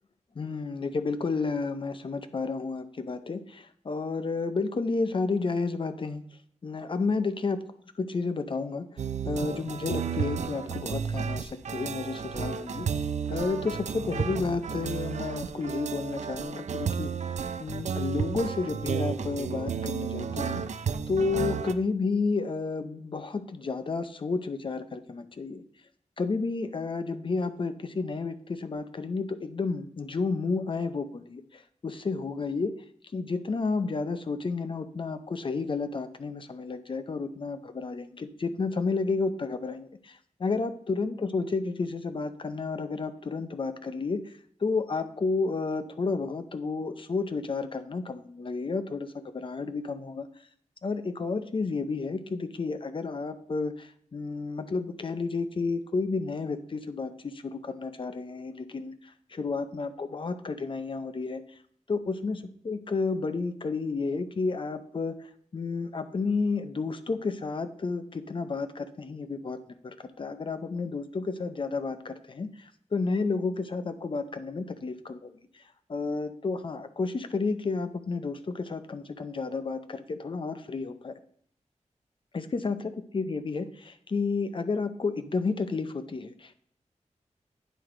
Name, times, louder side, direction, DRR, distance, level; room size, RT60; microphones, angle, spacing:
voice 1, 0.4-6.2 6.6-7.6 8.0-20.8 21.1-25.6 26.2-32.7 33.1-44.3 44.6-50.3 50.8-61.4 61.9-65.1 65.5-69.6 69.8-75.6 75.9-81.1 82.3-86.5, left 4 dB, 45° left, 10 dB, 0.5 m, -31 dB
sound 1, 9.0-21.7, right 7 dB, 70° right, 0.4 m, -32 dB
9.0 x 4.6 x 3.7 m, 0.63 s
wide cardioid pair, 120°, 12 cm